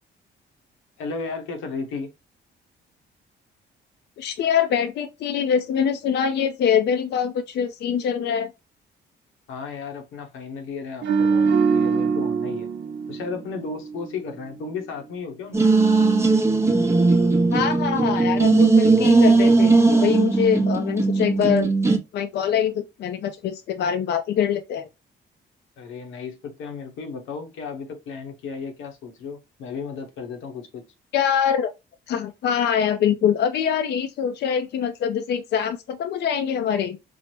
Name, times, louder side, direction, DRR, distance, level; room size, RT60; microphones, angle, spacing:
voice 1, 1.0-2.1 9.5-12.7 13.1-15.6 25.8-30.8, left 5 dB, 90° left, 0.8 m, -34 dB
voice 2, 4.2-8.5 17.5-21.7 22.1-24.9 31.1-31.7 32.1-37.0, left 8 dB, 60° left, 0.4 m, -24 dB
sound 1, 11.0-14.3 14.6-14.8, right 5 dB, 60° right, 0.6 m, -23 dB
sound 2, 15.5-22.0, right 3 dB, 15° right, 0.6 m, -18 dB
4.5 x 2.0 x 3.0 m
cardioid pair, 90°, 20 cm